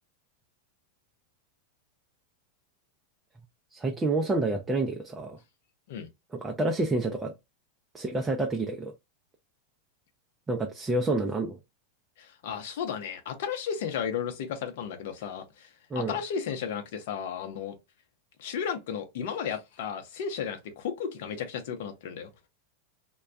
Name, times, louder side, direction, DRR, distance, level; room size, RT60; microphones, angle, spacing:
voice 1, 3.7-5.4 6.3-7.3 7.9-8.9 10.5-11.6 15.9-16.2, right 2 dB, 15° right, 0.4 m, -28 dB
voice 2, 12.2-17.7 18.4-22.3, left 7 dB, 65° left, 0.7 m, -34 dB
2.2 x 2.2 x 2.5 m
hypercardioid pair, 105°, 0 cm